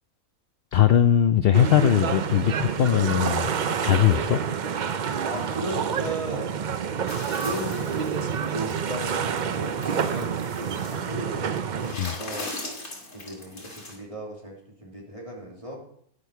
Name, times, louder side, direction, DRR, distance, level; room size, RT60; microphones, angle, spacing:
voice 1, 0.7-4.4 11.9-12.1, left 10 dB, 70° left, 10 dB, 0.5 m, -20 dB
sound 1, 1.5-11.9, right 7 dB, 65° right, 0.4 m, -28 dB
voice 2, 5.2-6.6 7.3-9.8 10.0-14.6 14.8-15.8, right 1 dB, 20° right, -3 dB, 2.8 m, -36 dB
sound 2, 7.1-11.1 11.7-13.9, left 2 dB, 50° left, 2.9 m, -40 dB
11.5 x 10.0 x 4.6 m, 0.67 s
omnidirectional pair, 1.5 m